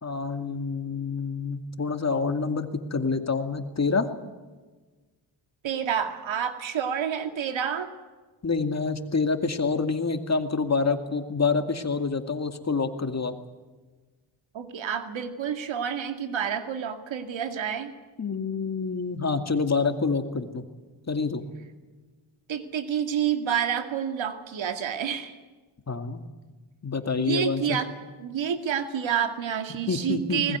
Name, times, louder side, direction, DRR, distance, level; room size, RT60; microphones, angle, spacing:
voice 1, 0.0-4.1 8.4-13.3 18.2-20.7 21.1-21.4 25.9-26.2 26.8-27.8 29.9-30.6, left 4 dB, 35° left, 7 dB, 2.3 m, -27 dB
voice 2, 5.6-7.9 14.5-17.9 22.5-25.3 27.2-27.9 28.2-30.6, right 8 dB, 85° right, 7 dB, 2.4 m, -29 dB
20.5 x 20.5 x 9.4 m, 1.3 s
cardioid pair, 80°, 45 cm